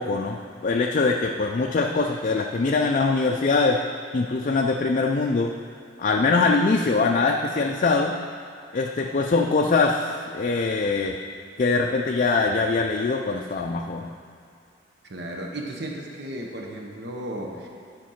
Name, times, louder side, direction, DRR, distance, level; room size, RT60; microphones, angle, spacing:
voice 1, 0.0-3.8 4.1-5.5 6.0-8.2 8.7-11.2 11.6-14.1, left 3 dB, 40° left, 2 dB, 0.4 m, -23 dB
voice 2, 15.1-17.7, right 1 dB, 60° right, 0 dB, 1.0 m, -34 dB
10.5 x 5.2 x 5.6 m, 2.3 s
head